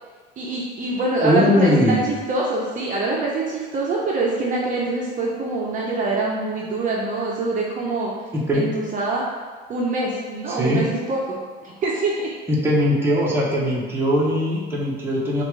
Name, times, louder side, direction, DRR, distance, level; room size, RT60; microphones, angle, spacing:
voice 1, 0.4-8.1 8.5-9.2 9.7-11.4 11.6-12.2, right 2 dB, 40° right, -4 dB, 0.7 m, -24 dB
voice 2, 1.2-2.0 8.3-8.7 10.5-10.8 12.5-15.4, left 1 dB, 10° right, -5 dB, 1.0 m, -20 dB
6.8 x 2.5 x 3.2 m, 1.4 s
cardioid pair, 140°, 20 cm